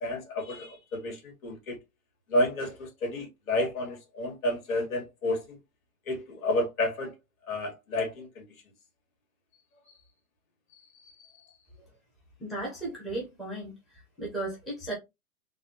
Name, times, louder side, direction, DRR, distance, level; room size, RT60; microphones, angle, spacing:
voice 1, 0.0-1.8 2.3-5.6 6.1-7.1 7.5-8.4, left 1 dB, 65° left, 2.0 m, -30 dB
voice 2, 12.4-14.9, right 2 dB, ahead, 0.7 m, -36 dB
4.0 x 2.2 x 2.8 m
hypercardioid pair, 155°, 43 cm